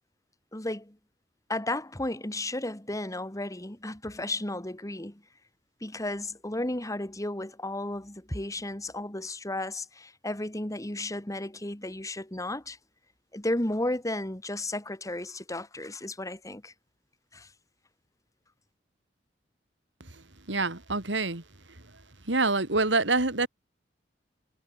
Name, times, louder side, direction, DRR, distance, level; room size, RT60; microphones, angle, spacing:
voice 1, 0.5-1.0 1.5-5.2 5.8-12.8 13.3-16.7 17.3-17.5, left 1 dB, 20° left, 2.3 m, -33 dB
voice 2, 20.5-21.4 22.3-23.5, right 3 dB, 85° right, 3.4 m, -26 dB
head